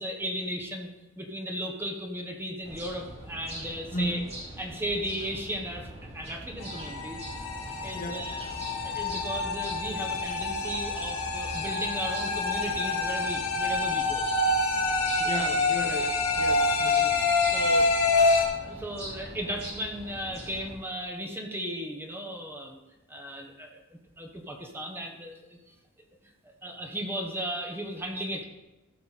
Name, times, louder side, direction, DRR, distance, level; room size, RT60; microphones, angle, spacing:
voice 1, 0.0-4.2 4.6-7.2 7.8-8.5 8.8-14.2 15.3-15.5 17.5-17.9 18.1-18.3 18.6-22.8 23.1-25.6 26.4-28.4, equal, 10° right, 2 dB, 1.1 m, -36 dB
sound 1, 2.6-20.8, right 1 dB, 30° right, 3.1 m, -42 dB
voice 2, 3.9-4.3 7.9-8.3 15.2-16.1 16.4-17.1, equal, 40° left, 3 dB, 1.1 m, -34 dB
sound 2, 6.6-18.4, left 3 dB, 70° left, 2.4 m, -27 dB
14.5 x 5.9 x 4.2 m, 1.0 s
head